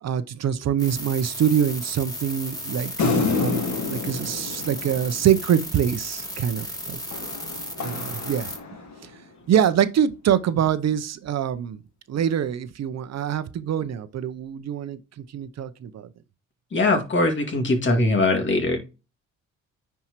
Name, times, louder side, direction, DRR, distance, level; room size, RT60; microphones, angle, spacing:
voice 1, 0.0-7.0 7.8-8.5 9.0-9.1 9.5-11.8 12.1-15.0 15.3-16.1, right 9 dB, 60° right, 0.7 m, -24 dB
sound 1, 0.8-8.6, left 1 dB, 15° left, 2.7 m, -35 dB
sound 2, 3.0-5.7 7.1-9.2, left 4 dB, 70° left, 1.8 m, -29 dB
voice 2, 16.7-18.8, left 2 dB, 40° left, 2.2 m, -21 dB
9.9 x 4.6 x 3.0 m
cardioid pair, 90°, 30 cm